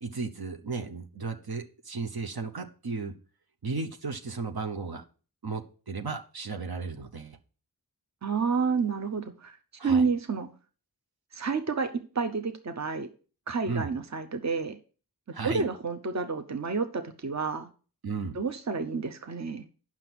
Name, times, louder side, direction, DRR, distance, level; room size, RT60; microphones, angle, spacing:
voice 1, 0.0-3.1 3.6-5.0 5.4-7.4 9.8-10.0 13.6-13.9 15.3-15.7 18.0-18.4, right 4 dB, 70° right, 5 dB, 0.9 m, -34 dB
voice 2, 8.2-9.6 9.8-10.5 11.3-13.1 13.5-14.8 15.4-17.7 18.3-19.6, right 5 dB, 45° right, 9 dB, 0.8 m, -29 dB
7.6 x 5.9 x 6.0 m, 0.38 s
wide cardioid pair, 55°, 38 cm